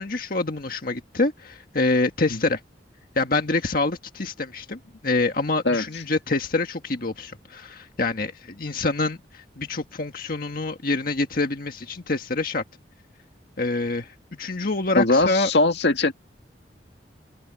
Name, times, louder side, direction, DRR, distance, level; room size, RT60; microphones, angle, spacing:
voice 1, 0.0-2.6 3.1-12.6 13.6-15.5, left 3 dB, 55° left, 1.6 m, -26 dB
voice 2, 15.0-16.1, left 2 dB, 75° left, 1.9 m, -20 dB
head